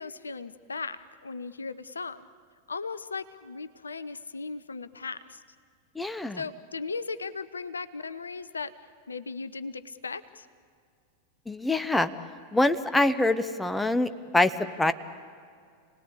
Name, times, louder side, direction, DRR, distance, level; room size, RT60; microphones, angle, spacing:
voice 1, 0.0-2.3 2.7-5.4 6.3-8.7 9.1-10.5, left 4 dB, 75° left, 14 dB, 0.7 m, -37 dB
voice 2, 6.0-6.4 11.5-12.1 12.5-14.5 14.8-14.9, left 2 dB, 5° left, 12 dB, 0.9 m, -24 dB
28.0 x 19.0 x 8.5 m, 2.2 s
figure-of-eight pair, 90°, 0 cm